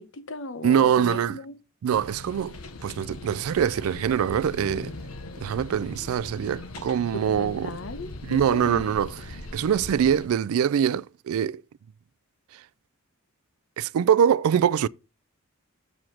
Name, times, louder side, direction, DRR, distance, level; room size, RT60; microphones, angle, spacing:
voice 1, 0.0-1.6 7.1-8.8, left 2 dB, 60° left, 0.9 m, -36 dB
voice 2, 0.6-1.4 1.8-2.5 2.8-4.9 5.4-7.8 8.2-11.6 13.8-14.9, right 8 dB, 75° right, 0.3 m, -24 dB
sound 1, 1.9-10.3, left 2 dB, 85° left, 1.0 m, -40 dB
7.4 x 4.9 x 5.8 m
head